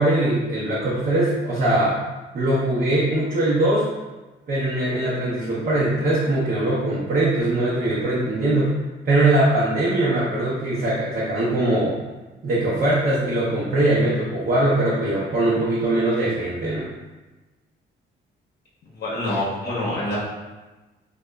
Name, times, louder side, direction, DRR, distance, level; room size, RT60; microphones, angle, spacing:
voice 1, 0.0-2.0 2.3-3.9 4.5-8.8 9.0-11.9 12.4-16.8, right 1 dB, 45° right, -7 dB, 0.6 m, -21 dB
voice 2, 18.9-20.2, left 1 dB, 55° left, -6 dB, 0.7 m, -26 dB
2.8 x 2.2 x 2.2 m, 1.1 s
cardioid pair, 90°, 20 cm